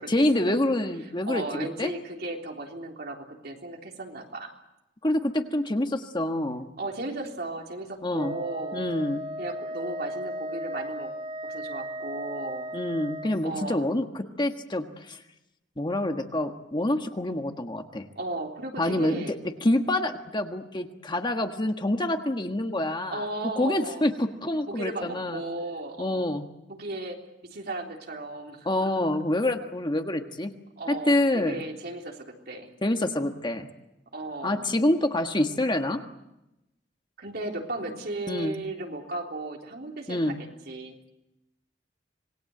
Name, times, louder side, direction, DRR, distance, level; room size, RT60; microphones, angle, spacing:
voice 1, 0.1-1.9 5.0-6.7 8.0-8.3 8.7-9.2 12.7-14.1 14.4-15.2 15.8-18.1 18.8-19.2 19.6-23.2 23.6-25.4 26.0-26.4 28.6-30.5 30.9-31.6 32.8-33.7 34.4-36.0 38.3-38.5 40.1-40.3, left 1 dB, 25° left, 5 dB, 1.5 m, -26 dB
voice 2, 1.3-4.5 6.8-8.9 9.4-11.1 11.4-12.7 13.4-13.9 18.2-19.4 23.1-24.0 24.7-26.3 26.7-28.9 30.8-32.7 34.1-34.8 37.2-41.0, right 2 dB, 60° right, 1 dB, 3.6 m, -35 dB
Wind instrument woodwind instrument, 8.1-13.4, equal, 30° right, 1.8 m, -36 dB
26.5 x 20.5 x 7.9 m, 0.92 s
head